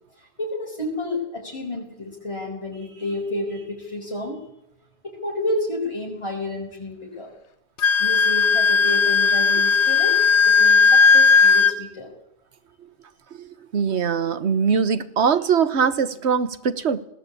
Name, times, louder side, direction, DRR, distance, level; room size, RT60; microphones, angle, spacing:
voice 1, 0.4-4.4 5.0-7.3 8.0-12.1, left 1 dB, 25° left, -3 dB, 5.2 m, -30 dB
Wind instrument woodwind instrument, 7.8-11.7, left 5 dB, 85° left, 1.3 m, -16 dB
voice 2, 13.4-17.0, right 6 dB, 80° right, 14 dB, 1.4 m, -22 dB
19.5 x 17.0 x 8.5 m, 0.78 s
omnidirectional pair, 1.1 m